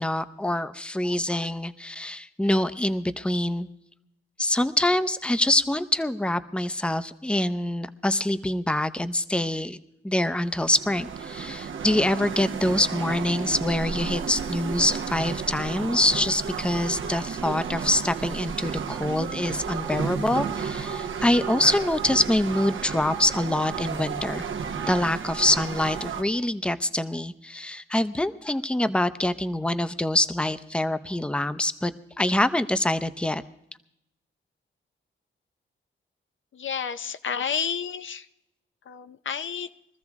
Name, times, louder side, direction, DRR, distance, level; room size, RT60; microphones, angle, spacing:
voice 1, 0.0-3.7 4.4-9.8 10.0-24.5 24.9-31.9 32.2-33.4, left 1 dB, 5° left, 12 dB, 0.6 m, -25 dB
sound 1, 10.4-26.2, right 6 dB, 70° right, 1.0 m, -32 dB
voice 2, 36.5-38.3 38.9-39.7, left 7 dB, 65° left, 10 dB, 0.6 m, -30 dB
22.0 x 14.0 x 3.6 m, 0.81 s
cardioid pair, 70°, 21 cm